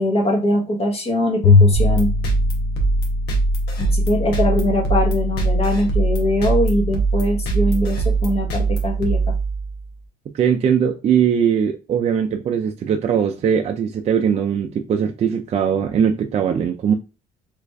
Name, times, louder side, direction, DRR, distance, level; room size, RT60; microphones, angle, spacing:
voice 1, 0.0-2.1 3.8-9.3, left 1 dB, 35° left, 1.0 m, -21 dB
Bowed string instrument, 1.4-3.8, left 4 dB, 55° left, 0.6 m, -19 dB
sound 1, 1.7-9.9, right 2 dB, 85° left, 1.0 m, -21 dB
voice 2, 10.3-16.9, right 7 dB, 40° right, 0.4 m, -20 dB
3.2 x 2.4 x 3.3 m
cardioid pair, 110°, 17 cm